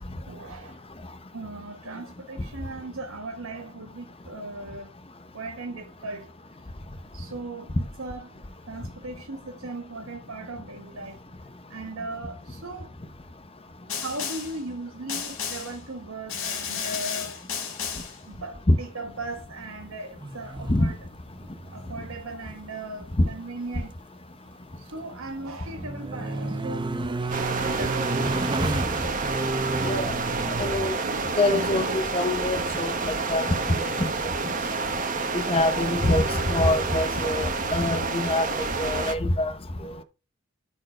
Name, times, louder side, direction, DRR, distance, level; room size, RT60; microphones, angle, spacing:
voice 1, 0.2-0.9 1.3-4.9 5.3-6.3 7.1-11.2 11.7-12.9 14.0-17.4 18.3-21.0 21.7-23.9 24.8-26.9 27.2-28.3 30.1-30.6 31.0-32.1 32.4-32.5 36.7-36.8 39.8-40.0, right 2 dB, 90° right, 1.1 m, -38 dB
Snare drum, 13.9-14.6 15.1-15.8 16.3-18.2, left 6 dB, 75° left, 3.6 m, -32 dB
sound 1, 20.2-21.1 21.4-22.2 22.5-22.6 25.1-30.9 33.8-33.9, right 2 dB, 25° right, 0.6 m, -31 dB
sound 2, 27.3-39.1, right 4 dB, 40° right, 1.3 m, -29 dB
voice 2, 30.6-30.9 31.4-33.9 35.3-38.5 38.8-39.5, left 2 dB, 30° left, 0.8 m, -24 dB
13.0 x 4.6 x 4.4 m
head